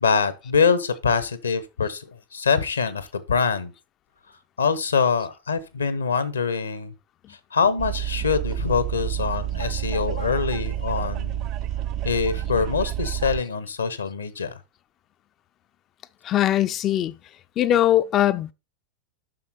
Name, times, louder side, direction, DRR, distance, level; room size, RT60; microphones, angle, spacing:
voice 1, 0.0-3.7 4.6-6.9 7.3-11.5 12.0-14.5, left 5 dB, 75° left, 0.9 m, -24 dB
sound 1, 7.8-13.4, right 11 dB, 35° right, 0.4 m, -29 dB
voice 2, 16.2-17.2 17.6-18.5, left 12 dB, 30° left, 0.4 m, -20 dB
7.7 x 6.0 x 4.2 m
figure-of-eight pair, 90°, 0 cm